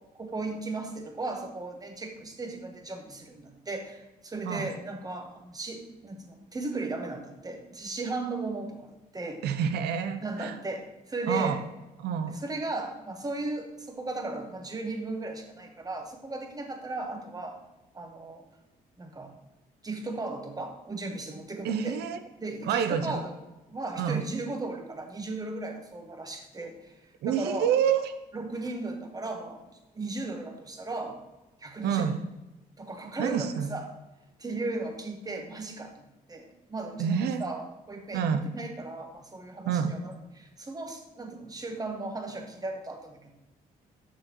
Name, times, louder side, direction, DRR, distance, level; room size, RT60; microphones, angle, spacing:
voice 1, 0.1-9.4 10.2-11.6 12.3-17.6 17.9-18.4 19.0-19.3 19.8-22.0 22.4-23.4 23.7-27.0 27.3-27.7 28.3-29.6 29.9-31.2 31.6-32.1 32.8-33.9 34.4-36.0 36.3-43.3, right 2 dB, 25° right, 4 dB, 1.1 m, -36 dB
voice 2, 9.4-10.5 11.3-11.6 12.0-12.4 21.6-22.2 22.7-23.2 24.0-24.2 27.2-28.1 31.8-32.2 33.2-33.7 37.0-37.4 38.1-38.4 39.6-39.9, right 8 dB, 85° right, 10 dB, 0.6 m, -27 dB
6.7 x 6.2 x 3.0 m, 1.0 s
cardioid pair, 85°, 16 cm